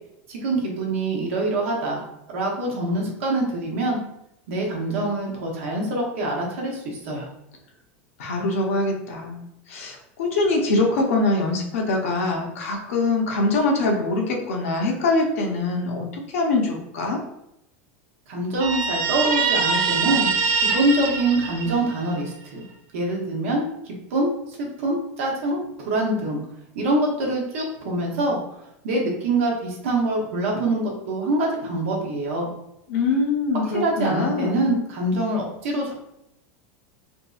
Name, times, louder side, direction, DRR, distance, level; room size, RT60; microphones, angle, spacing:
voice 1, 0.3-2.0 2.3-4.0 4.5-7.3 18.3-20.3 20.6-22.6 22.9-26.4 26.7-28.4 28.8-32.5 33.8-35.9, right 2 dB, 80° right, -2 dB, 0.9 m, -25 dB
voice 2, 8.2-9.4 9.7-16.1 16.3-17.2 32.9-34.7, left 2 dB, 85° left, 0 dB, 0.6 m, -23 dB
Guitar, 18.6-22.2, right 5 dB, 60° right, 0.4 m, -23 dB
2.6 x 2.6 x 2.3 m, 0.81 s
supercardioid pair, 130°, 7 cm